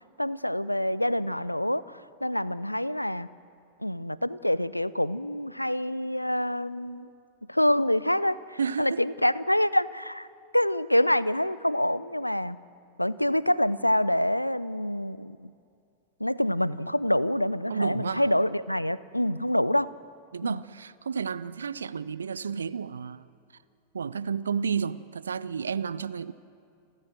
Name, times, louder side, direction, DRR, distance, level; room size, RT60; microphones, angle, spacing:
voice 1, 0.2-3.3 3.8-7.1 7.5-10.3 10.5-12.6 13.0-15.5 16.2-19.9 20.4-20.6, left 1 dB, 90° left, 0.5 m, -26 dB
voice 2, 8.6-9.1 17.7-18.3 20.3-23.3 23.9-26.3, right 6 dB, 70° right, 0.6 m, -31 dB
29.5 x 13.0 x 7.6 m
figure-of-eight pair, 90°, 0 cm